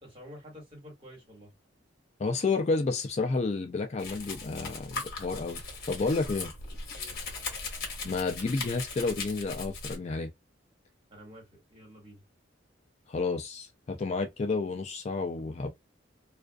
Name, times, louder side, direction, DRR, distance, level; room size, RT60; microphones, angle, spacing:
voice 1, 0.0-1.5 6.9-7.2 11.1-12.2, equal, 30° right, 1.6 m, -49 dB
voice 2, 2.2-5.6 5.9-6.5 8.0-10.3 13.1-15.7, left 3 dB, 35° left, 0.3 m, -30 dB
Domestic sounds home sounds, 4.0-10.0, left 3 dB, 50° left, 1.0 m, -39 dB
2.4 x 2.4 x 2.3 m
head